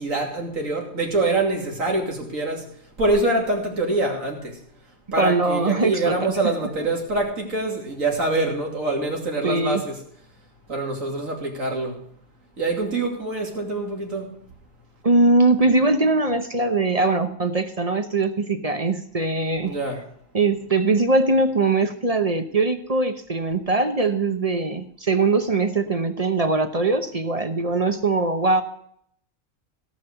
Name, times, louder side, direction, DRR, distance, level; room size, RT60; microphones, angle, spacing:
voice 1, 0.0-2.7 3.0-4.6 5.1-9.9 10.7-12.0 12.6-14.3 19.6-20.0, right 2 dB, 75° right, 0 dB, 3.1 m, -25 dB
voice 2, 5.2-6.2 9.4-9.8 15.0-19.8 20.3-28.6, right 3 dB, 35° right, 8 dB, 0.8 m, -21 dB
17.0 x 6.1 x 6.6 m, 0.66 s
omnidirectional pair, 1.4 m